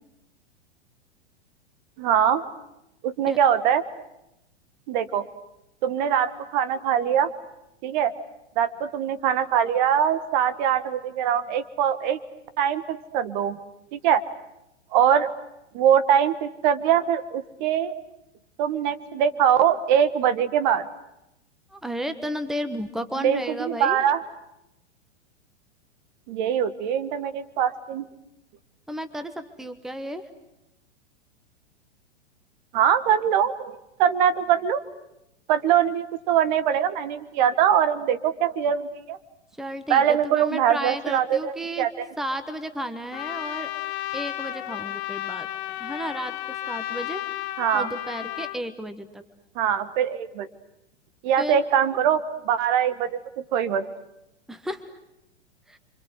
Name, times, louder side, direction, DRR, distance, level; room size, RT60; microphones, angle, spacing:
voice 1, 2.0-2.4 3.0-3.8 4.9-5.2 5.8-7.3 7.8-8.1 8.6-12.2 12.6-13.6 13.9-14.2 14.9-15.3 15.7-17.9 18.6-20.8 23.2-24.2 26.3-28.0 32.7-34.8 35.5-39.2 39.9-42.1 47.6-47.9 49.5-50.5 51.2-53.2 53.5-53.9, right 9 dB, 40° right, 13 dB, 1.5 m, -22 dB
voice 2, 21.7-24.0 28.9-30.2 39.6-41.9 42.2-43.7 44.1-47.2 47.7-49.2 51.4-51.6 54.5-54.9 55.7-55.8, equal, ahead, 10 dB, 1.3 m, -33 dB
Trumpet, 43.1-48.6, left 14 dB, 40° left, 1.1 m, -33 dB
29.0 x 25.0 x 8.0 m, 0.87 s
figure-of-eight pair, 105°, 34 cm